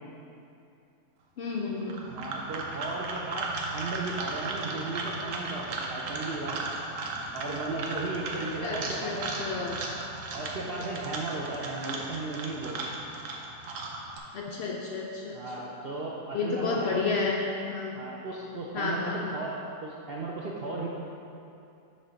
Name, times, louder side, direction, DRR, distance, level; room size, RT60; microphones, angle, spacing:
voice 1, 1.4-2.1 8.6-9.8 14.3-15.7 16.3-18.0 18.7-19.4, left 4 dB, 85° left, -2 dB, 0.5 m, -31 dB
sound 1, 1.8-14.2, right 3 dB, 65° right, 1.0 m, -36 dB
voice 2, 2.1-6.9 7.3-9.3 10.3-12.8 15.3-17.1 17.9-19.6 19.8-20.9, right 3 dB, 80° right, -3 dB, 0.5 m, -35 dB
7.4 x 3.3 x 5.1 m, 2.7 s
omnidirectional pair, 1.7 m